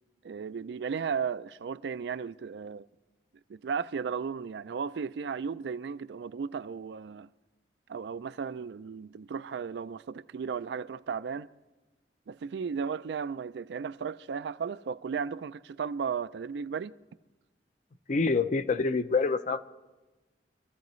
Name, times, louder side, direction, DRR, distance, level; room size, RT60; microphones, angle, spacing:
voice 1, 0.2-2.9 3.5-7.3 7.9-11.5 12.3-16.9, right 6 dB, 70° right, 0.4 m, -35 dB
voice 2, 18.1-19.6, left 4 dB, 45° left, 0.5 m, -26 dB
24.5 x 14.5 x 3.1 m
head